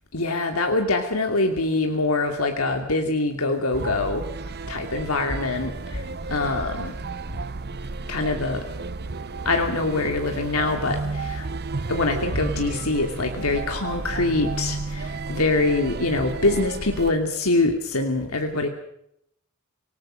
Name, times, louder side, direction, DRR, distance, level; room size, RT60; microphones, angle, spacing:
voice 1, 0.1-4.3 4.7-6.9 8.1-8.6 9.4-11.5 11.9-18.7, left 2 dB, 90° left, 4 dB, 2.7 m, -24 dB
sound 1, 3.7-17.1, right 3 dB, 50° right, 0.9 m, -32 dB
27.0 x 19.0 x 6.4 m, 0.74 s
head